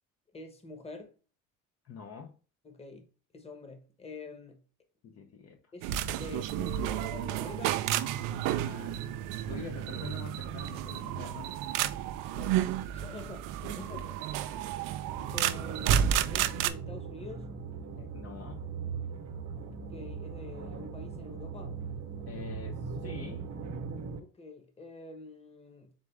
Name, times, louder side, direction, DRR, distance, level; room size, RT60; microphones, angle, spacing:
voice 1, 0.3-1.1 2.6-3.1 3.3-4.6 5.7-7.8 12.3-12.6 12.9-13.5 13.8-14.1 14.8-15.0 15.3-17.5 19.8-21.8 24.2-25.9, left 3 dB, 20° left, 1.2 m, -46 dB
voice 2, 1.8-2.3 5.0-5.6 6.2-6.3 8.3-9.1 9.4-11.5 13.6-14.1 17.9-18.6 22.3-23.5, left 6 dB, 50° left, 0.8 m, -45 dB
sound 1, 5.8-16.7, right 11 dB, 90° right, 0.5 m, -31 dB
sound 2, 15.1-24.2, right 5 dB, 65° right, 0.8 m, -40 dB
3.9 x 3.6 x 3.4 m
cardioid pair, 105°, 31 cm